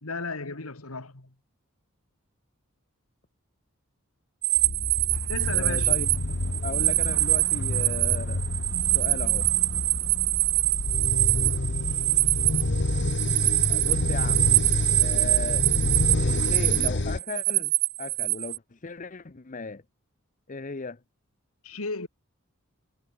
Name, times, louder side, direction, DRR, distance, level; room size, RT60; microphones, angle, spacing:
voice 1, 0.0-1.3 5.3-5.9 21.6-22.1, left 3 dB, 85° left, 2.3 m, -34 dB
sound 1, 4.4-18.6, right 19 dB, 85° right, 1.1 m, -24 dB
sound 2, 4.6-17.2, left 2 dB, 55° left, 1.3 m, -29 dB
voice 2, 5.5-6.1 6.6-8.4 8.9-9.5 13.7-14.5 15.0-15.7 16.1-17.7 18.0-19.8 20.5-21.0, left 4 dB, 35° left, 0.8 m, -36 dB
head